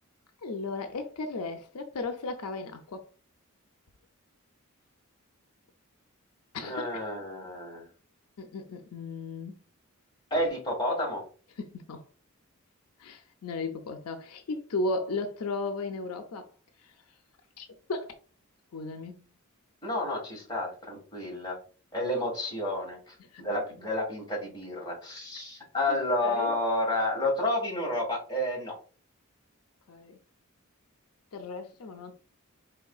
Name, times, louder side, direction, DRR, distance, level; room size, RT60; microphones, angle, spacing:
voice 1, 0.4-3.0 6.5-6.9 8.4-9.6 11.6-12.0 13.0-16.5 16.8-16.9 17.6-18.1 18.7-19.3 23.2-23.4 25.9-26.0 26.2-26.5 29.9-30.2 31.3-32.1, left 3 dB, 85° left, 0.5 m, -35 dB
voice 2, 6.6-7.9 10.3-11.2 19.8-21.6 21.9-28.7, left 1 dB, 20° left, 1.6 m, -30 dB
4.6 x 3.2 x 2.3 m
head